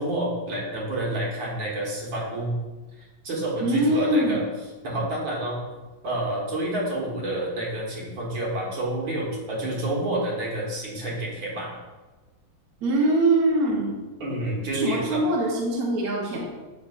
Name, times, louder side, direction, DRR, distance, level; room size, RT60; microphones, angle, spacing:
voice 1, 0.0-2.5 3.0-4.4 4.8-5.6 6.0-11.7 14.2-15.2, right 1 dB, 80° right, -4 dB, 2.3 m, -29 dB
voice 2, 3.6-4.4 12.8-14.0 14.7-16.4, right 1 dB, 55° right, -2 dB, 1.3 m, -23 dB
7.1 x 5.7 x 2.4 m, 1.2 s
omnidirectional pair, 2.1 m